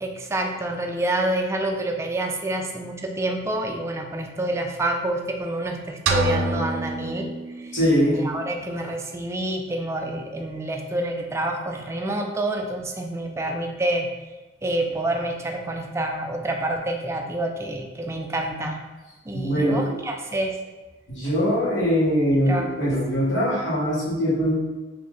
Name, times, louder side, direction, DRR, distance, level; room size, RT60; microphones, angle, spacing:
voice 1, 0.0-7.8 8.1-14.1 14.6-18.8 19.3-20.6 22.4-22.7, right 1 dB, 15° right, 2 dB, 0.3 m, -28 dB
sound 1, 6.1-8.0, right 2 dB, 85° right, 0.4 m, -26 dB
voice 2, 7.7-8.2 19.3-19.9 21.1-24.5, equal, 75° left, -8 dB, 1.4 m, -22 dB
3.1 x 2.6 x 3.7 m, 1.2 s
head